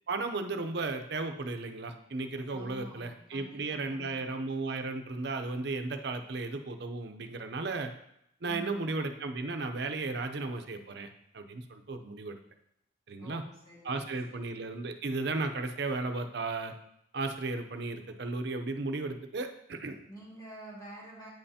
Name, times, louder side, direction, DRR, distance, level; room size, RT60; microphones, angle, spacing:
voice 1, 0.1-7.9 8.4-11.1 11.3-12.4 13.1-13.4 13.8-16.7 17.1-20.0, right 3 dB, 60° right, 6 dB, 0.6 m, -35 dB
voice 2, 2.5-4.4 8.5-8.9 13.2-14.4 20.1-21.3, right 1 dB, 20° left, -6 dB, 2.0 m, -48 dB
9.0 x 5.5 x 2.8 m, 0.77 s
head